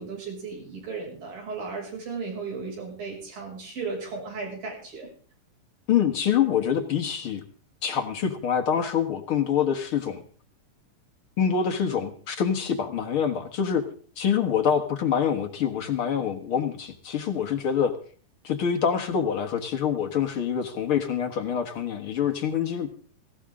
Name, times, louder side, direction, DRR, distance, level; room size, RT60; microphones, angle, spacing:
voice 1, 0.0-5.1, right 4 dB, 80° right, 0 dB, 8.2 m, -35 dB
voice 2, 5.9-7.4 7.8-10.2 11.4-13.8 14.2-18.0 18.4-22.9, left 8 dB, 50° left, 5 dB, 1.8 m, -25 dB
18.0 x 17.0 x 3.7 m, 0.44 s
omnidirectional pair, 4.0 m